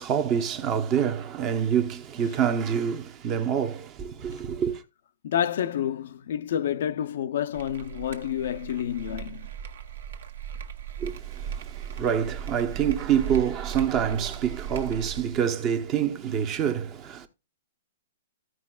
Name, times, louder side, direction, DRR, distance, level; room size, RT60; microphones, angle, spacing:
voice 1, 0.0-4.8 11.0-17.3, right 8 dB, 25° right, 1.0 m, -26 dB
voice 2, 5.2-9.5, left 10 dB, 60° left, 0.6 m, -29 dB
sound 1, 7.5-15.4, right 8 dB, 70° right, 1.5 m, -37 dB
15.5 x 5.2 x 2.4 m
hypercardioid pair, 160°, 0 cm